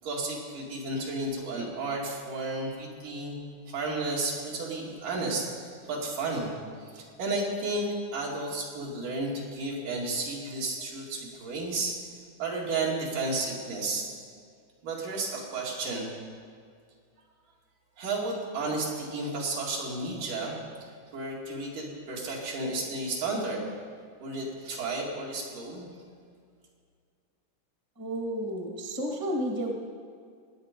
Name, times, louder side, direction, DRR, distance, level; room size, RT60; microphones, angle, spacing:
voice 1, 0.0-3.4 3.7-6.5 6.9-12.0 12.4-14.2 14.8-16.1 18.0-20.6 21.1-23.6 24.2-25.9, right 2 dB, 80° right, -3 dB, 3.8 m, -32 dB
voice 2, 28.0-29.7, equal, 15° right, 1 dB, 0.8 m, -31 dB
19.5 x 9.3 x 5.2 m, 2.2 s
omnidirectional pair, 3.7 m